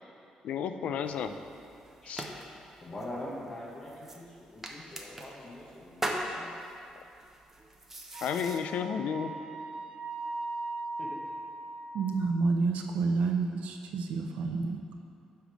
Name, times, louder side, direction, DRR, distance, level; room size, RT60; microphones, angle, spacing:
voice 1, 0.4-1.3 2.1-2.3 8.2-9.3, left 7 dB, 70° left, 8 dB, 0.4 m, -32 dB
sound 1, 1.0-8.6, right 1 dB, 15° right, 0.7 m, -41 dB
voice 2, 2.8-6.5 11.0-11.1, left 1 dB, 30° left, -5 dB, 1.0 m, -43 dB
Wind instrument woodwind instrument, 8.1-12.0, right 2 dB, 50° right, 1.4 m, -39 dB
voice 3, 11.9-14.8, right 4 dB, 80° right, 4 dB, 0.5 m, -29 dB
10.0 x 3.4 x 6.2 m, 2.6 s
cardioid pair, 145°, 2 cm